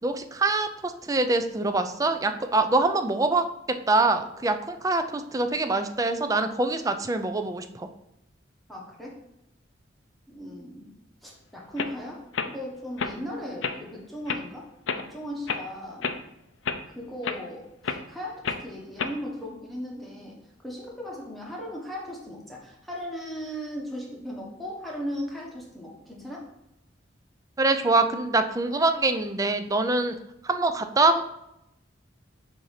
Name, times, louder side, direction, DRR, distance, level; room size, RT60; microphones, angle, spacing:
voice 1, 0.0-3.5 3.9-7.9 27.6-30.2 30.4-31.2, right 2 dB, 20° right, 8 dB, 0.4 m, -24 dB
voice 2, 8.7-9.2 10.3-10.9 11.2-14.7 14.9-16.1 16.9-26.5, equal, ahead, -3 dB, 1.2 m, -37 dB
sound 1, 11.3-11.4 11.8-11.9 12.3-12.5 13.0-13.2 13.6-13.8 14.3-14.4 14.9-15.1 15.5-15.6 16.0-16.2 16.6-16.8 17.2-17.4 17.8-18.0 18.4-18.6 19.0-19.2, left 5 dB, 90° left, 0.5 m, -30 dB
7.8 x 2.8 x 5.7 m, 0.83 s
head